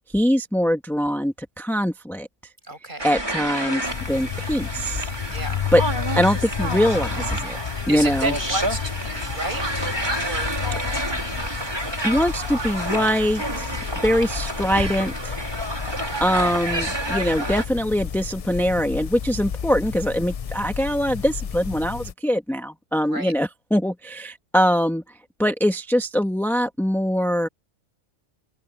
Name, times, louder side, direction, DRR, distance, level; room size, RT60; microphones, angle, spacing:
voice 1, 0.1-2.3 3.0-5.1 5.7-5.8 6.2-7.6 7.9-8.3 12.0-15.4 16.2-25.0 25.4-27.5, equal, ahead, 1.3 m, -23 dB
voice 2, 2.7-3.1 5.3-5.6 7.5-9.9 10.1-10.6 23.1-23.3, right 2 dB, 40° right, 7.4 m, -32 dB
sound 1, 3.0-17.7, right 1 dB, 20° right, 3.0 m, -29 dB
sound 2, 3.8-22.1, left 8 dB, 55° left, 0.4 m, -32 dB
open air
omnidirectional pair, 1.3 m